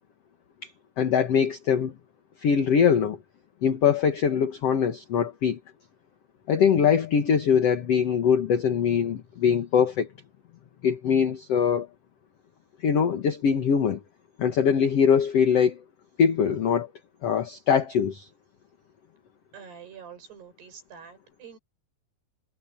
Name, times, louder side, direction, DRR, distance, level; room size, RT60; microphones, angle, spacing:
voice 1, 1.0-1.9 2.4-3.2 3.6-5.6 6.5-10.1 10.8-11.9 12.8-14.0 14.4-15.8 16.2-16.9 17.2-18.3, left 7 dB, 55° left, 1.9 m, -22 dB
voice 2, 19.5-21.6, right 7 dB, 80° right, 8.4 m, -46 dB
omnidirectional pair, 4.6 m